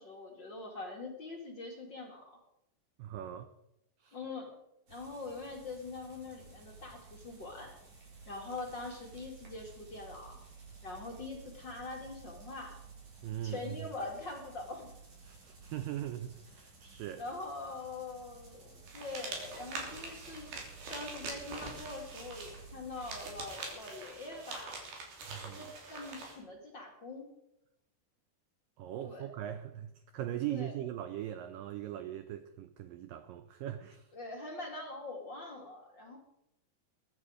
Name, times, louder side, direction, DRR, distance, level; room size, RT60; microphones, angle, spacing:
voice 1, 0.0-2.4 4.1-4.6 4.9-7.7 8.3-10.4 10.8-12.8 13.4-14.9 17.2-20.6 20.9-24.8 25.6-27.3 29.0-29.3 30.5-30.7 34.1-36.2, left 3 dB, 35° left, 2.1 m, -43 dB
voice 2, 3.0-3.5 4.0-4.2 13.2-13.9 15.2-17.2 25.3-25.7 28.8-34.1, right 12 dB, 85° right, 2.0 m, -40 dB
sound 1, 4.9-23.4, right 4 dB, 40° right, 5.1 m, -54 dB
sound 2, 18.9-26.4, right 3 dB, 65° right, 4.9 m, -44 dB
22.0 x 11.0 x 5.0 m
omnidirectional pair, 4.9 m